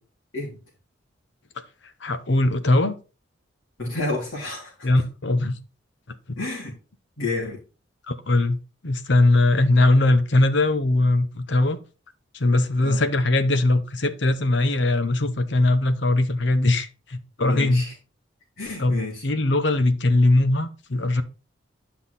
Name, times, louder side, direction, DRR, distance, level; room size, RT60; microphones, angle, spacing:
voice 1, 2.0-2.9 4.8-5.6 8.1-11.8 12.3-17.8 18.8-21.2, left 2 dB, 60° left, 0.9 m, -20 dB
voice 2, 3.8-4.9 6.4-6.8 7.2-7.6 12.8-13.0 17.4-17.9 18.6-19.2, left 2 dB, 80° left, 3.5 m, -30 dB
10.0 x 5.8 x 4.2 m
head